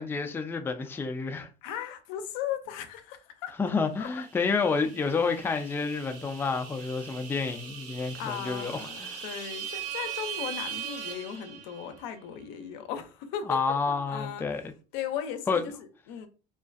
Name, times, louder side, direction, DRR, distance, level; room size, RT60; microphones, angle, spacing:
voice 1, 0.0-1.5 3.6-9.2 13.5-14.7 15.5-15.6, left 4 dB, 10° left, 0.3 m, -29 dB
voice 2, 1.6-3.5 4.0-4.1 8.2-13.6 13.9-14.4 14.9-16.3, left 9 dB, 70° left, 0.5 m, -37 dB
sound 1, 4.1-12.1, right 7 dB, 85° right, 0.7 m, -40 dB
2.4 x 2.2 x 2.5 m
supercardioid pair, 90°, 20 cm